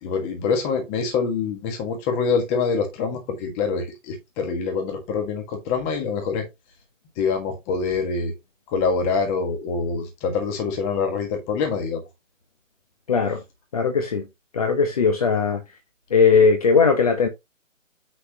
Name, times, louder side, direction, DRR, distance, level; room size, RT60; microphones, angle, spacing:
voice 1, 0.0-6.5 7.2-8.3 8.7-12.0, left 5 dB, 10° left, 1.4 m, -25 dB
voice 2, 13.1-13.4 13.7-14.3 14.5-15.6 16.1-17.3, left 5 dB, 30° left, 1.2 m, -18 dB
7.7 x 6.4 x 2.9 m
figure-of-eight pair, 160°, 39 cm